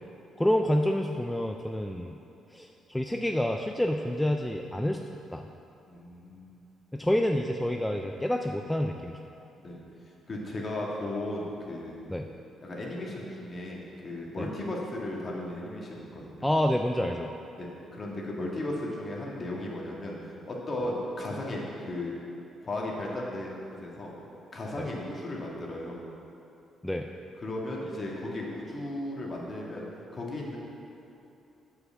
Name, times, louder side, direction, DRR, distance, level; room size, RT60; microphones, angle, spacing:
voice 1, 0.4-2.2 2.5-5.0 5.3-5.5 6.9-9.2 12.1-12.3 14.4-14.5 16.4-17.3 24.8-24.9 26.8-27.1, left 1 dB, 5° left, 3 dB, 0.4 m, -28 dB
voice 2, 5.9-6.6 9.6-9.8 10.3-12.0 12.6-16.5 17.6-20.2 20.5-22.1 22.6-24.1 24.5-26.0 27.4-29.9 30.1-30.6, left 1 dB, 35° left, -3 dB, 2.0 m, -35 dB
7.8 x 5.8 x 7.2 m, 2.8 s
cardioid pair, 90°, 0 cm